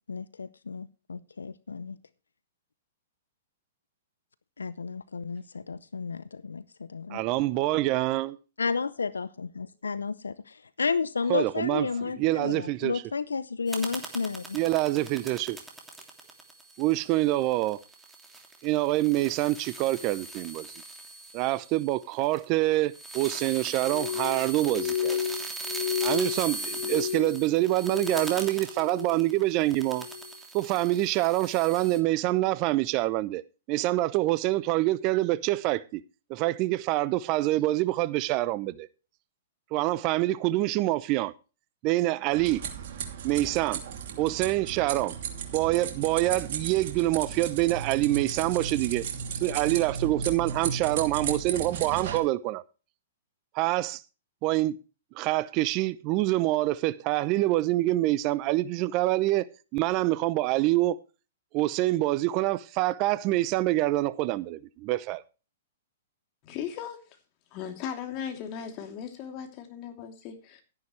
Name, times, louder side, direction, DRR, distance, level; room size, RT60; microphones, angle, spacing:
voice 1, 0.1-2.0 4.6-7.2 8.6-9.3 9.6-10.3 10.8-14.6, left 5 dB, 85° left, 0.6 m, -32 dB
voice 2, 7.1-8.4 11.3-13.0 14.5-15.6 16.8-17.8 18.6-20.7 21.3-25.2 26.0-30.1 30.5-33.4 33.7-36.0 36.3-38.9 39.7-41.3 41.8-42.6 43.2-43.8 44.2-45.2 45.5-49.0 49.4-52.6 53.5-54.0 54.4-54.8 55.1-61.0 61.5-65.2, right 17 dB, 40° right, 0.7 m, -26 dB
sound 1, 13.7-22.5 22.9-32.0, right 2 dB, 5° right, 2.9 m, -40 dB
Glass, 23.8-28.4 28.7-29.4 29.8-30.3 30.9-31.2, left 9 dB, 55° left, 1.4 m, -33 dB
sound 2, 42.3-52.2, right 7 dB, 55° right, 2.7 m, -35 dB
voice 3, 66.4-67.0 67.5-70.6, left 8 dB, 40° left, 3.0 m, -37 dB
12.0 x 10.5 x 3.2 m
hypercardioid pair, 115°, 0 cm